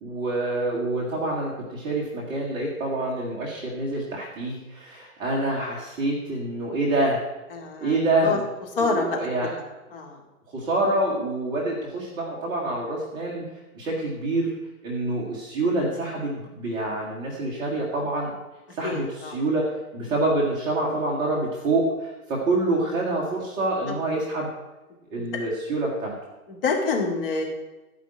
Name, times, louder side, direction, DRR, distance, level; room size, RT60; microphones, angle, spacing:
voice 1, 0.0-7.2 7.8-8.5 8.8-9.5 10.5-13.4 13.7-14.5 14.8-18.3 18.7-19.6 19.9-24.5 25.1-26.1, right 2 dB, 10° right, -4 dB, 1.0 m, -26 dB
voice 2, 7.5-8.4 8.8-9.2 9.9-10.2 18.8-19.4 26.5-27.4, left 4 dB, 40° left, 1 dB, 2.3 m, -27 dB
12.5 x 5.1 x 8.5 m, 1.1 s
hypercardioid pair, 155°, 44 cm